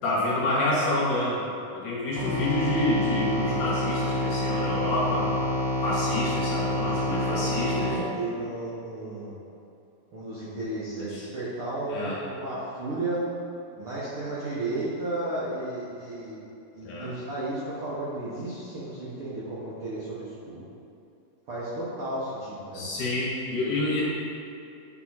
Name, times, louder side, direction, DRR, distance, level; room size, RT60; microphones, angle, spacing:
voice 1, 0.0-1.4 1.7-5.3 5.8-8.0 11.1-11.2 11.9-12.2 16.8-17.1 22.7-24.0, left 1 dB, 65° left, -7 dB, 2.9 m, -28 dB
sound 1, 2.2-7.9, left 1 dB, 85° left, 3.0 m, -27 dB
voice 2, 6.5-9.3 10.1-13.2 13.8-16.4 16.7-20.6 21.5-22.9, right 2 dB, 75° right, -10 dB, 1.2 m, -33 dB
9.3 x 3.6 x 4.3 m, 2.7 s
omnidirectional pair, 4.3 m